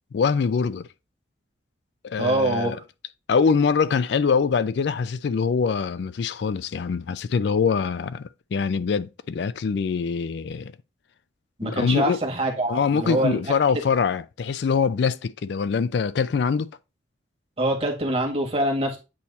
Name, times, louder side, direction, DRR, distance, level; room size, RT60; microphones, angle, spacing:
voice 1, 0.1-0.9 2.0-2.8 3.3-10.7 11.6-12.2 12.7-16.7, left 5 dB, 65° left, 0.4 m, -24 dB
voice 2, 2.2-2.8 11.6-13.4 17.6-19.0, right 1 dB, 35° right, 1.6 m, -24 dB
8.6 x 2.9 x 4.0 m
head